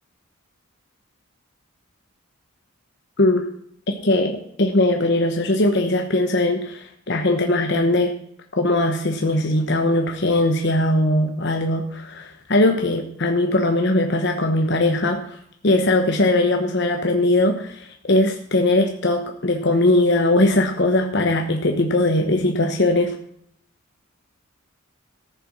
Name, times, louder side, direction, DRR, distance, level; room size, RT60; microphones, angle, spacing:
voice 1, 4.0-8.1 8.6-23.1, left 1 dB, 50° left, 3 dB, 1.0 m, -20 dB
14.0 x 6.8 x 6.0 m, 0.69 s
head